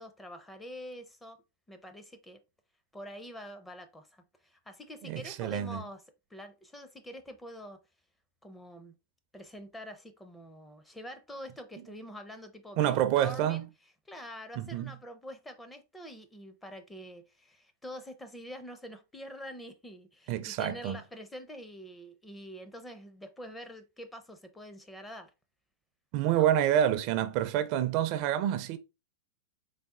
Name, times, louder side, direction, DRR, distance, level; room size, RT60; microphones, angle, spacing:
voice 1, 0.0-1.4 1.7-2.4 2.9-6.0 6.3-7.8 8.4-8.9 9.3-13.7 14.1-25.3 26.3-26.5, equal, 10° left, 0.5 m, -46 dB
voice 2, 5.0-5.8 12.8-13.6 14.6-14.9 20.3-21.0 26.1-28.8, right 11 dB, 45° right, 0.4 m, -28 dB
4.0 x 2.0 x 3.6 m
supercardioid pair, 140°, 0 cm